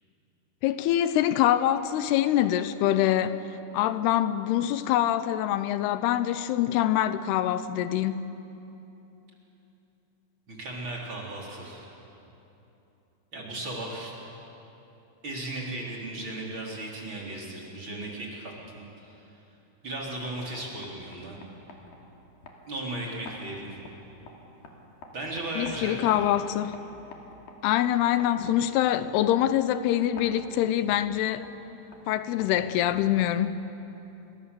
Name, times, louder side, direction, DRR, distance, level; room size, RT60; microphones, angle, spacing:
voice 1, 0.6-3.4 3.7-8.3 25.6-26.8 27.6-31.5 32.1-33.6, left 12 dB, 85° left, 2.8 m, -25 dB
voice 2, 10.5-11.9 13.3-14.1 15.2-19.3 19.8-21.4 22.7-23.8 25.1-26.2, right 1 dB, 30° right, 3.9 m, -36 dB
sound 1, 20.0-33.7, left 2 dB, 65° left, 4.0 m, -50 dB
30.0 x 22.5 x 6.9 m
omnidirectional pair, 4.6 m